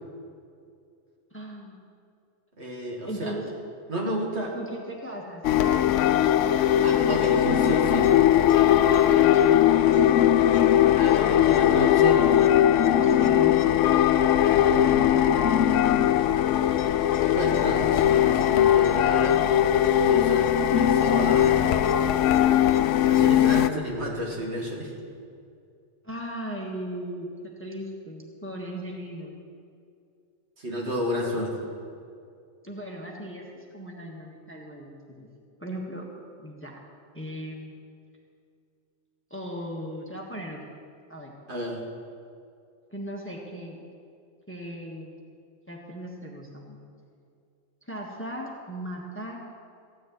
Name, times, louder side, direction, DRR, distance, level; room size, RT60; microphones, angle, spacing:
voice 1, 1.3-1.8 3.0-3.5 4.5-5.4 9.0-9.6 13.0-13.6 26.0-27.3 27.6-29.4 32.6-35.3 35.6-36.1 36.4-36.8 37.1-37.7 39.3-40.8 41.1-41.3 42.9-43.8 44.5-45.1 45.7-46.8 47.9-49.4, equal, 10° left, -1 dB, 1.4 m, -37 dB
voice 2, 2.6-3.3 3.9-4.6 6.8-8.1 11.0-12.3 14.4-15.7 17.3-19.4 20.0-21.9 23.1-24.9 30.6-31.6 41.5-41.8, equal, 60° right, -2 dB, 2.4 m, -31 dB
sound 1, 5.4-23.7, left 11 dB, 75° left, 0.9 m, -20 dB
14.5 x 6.5 x 9.2 m, 2.4 s
omnidirectional pair, 1.3 m